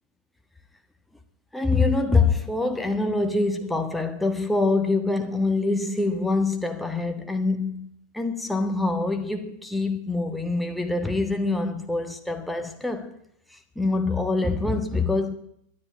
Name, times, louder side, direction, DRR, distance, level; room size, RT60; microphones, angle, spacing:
voice 1, 1.5-7.9 8.1-13.1 13.5-15.3, left 3 dB, 5° left, 1.5 m, -25 dB
12.5 x 10.5 x 9.5 m
figure-of-eight pair, 90°, 0 cm